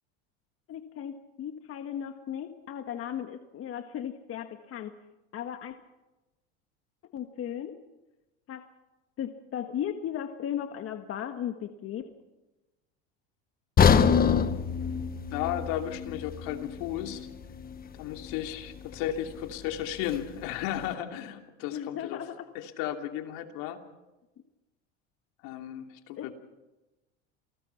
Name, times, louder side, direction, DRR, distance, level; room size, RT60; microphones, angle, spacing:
voice 1, 0.7-5.0 5.3-5.8 7.0-7.8 8.5-8.6 9.2-12.1 21.7-22.5 26.2-26.3, left 10 dB, 45° left, 7 dB, 1.6 m, -36 dB
sound 1, 13.8-17.8 18.2-18.3 18.9-19.0, left 7 dB, 25° left, 1.4 m, -25 dB
voice 2, 15.3-17.3 17.9-22.2 22.5-23.8 25.4-26.3, left 11 dB, 65° left, 5 dB, 2.9 m, -34 dB
28.0 x 19.5 x 5.8 m, 1.0 s
supercardioid pair, 110°, 32 cm